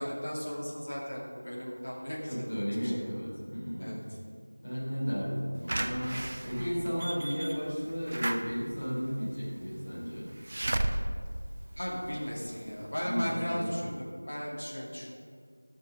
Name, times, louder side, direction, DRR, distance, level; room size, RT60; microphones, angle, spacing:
voice 1, 0.0-2.5 2.8-3.0 3.8-4.0 11.8-15.1, equal, 40° left, -4 dB, 2.5 m, -36 dB
voice 2, 2.3-4.0 4.6-10.3 13.0-13.8, equal, 20° left, -10 dB, 3.6 m, -34 dB
Slam / Alarm, 5.7-12.5 13.0-13.1 13.3-13.4, right 1 dB, 20° right, 0.4 m, -35 dB
13.0 x 6.3 x 6.8 m, 2.1 s
figure-of-eight pair, 180°, 0 cm